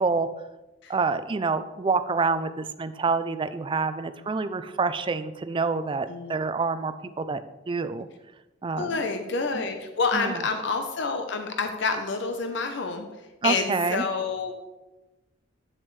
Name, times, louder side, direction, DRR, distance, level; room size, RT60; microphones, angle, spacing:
voice 1, 0.9-7.4 7.7-8.1 8.6-9.0 9.5-9.7 10.1-10.4 13.4-14.0, right 4 dB, 25° right, 11 dB, 0.4 m, -27 dB
voice 2, 8.7-13.1 13.4-14.5, left 4 dB, 65° left, 6 dB, 0.7 m, -28 dB
9.0 x 7.6 x 3.2 m, 1.1 s
head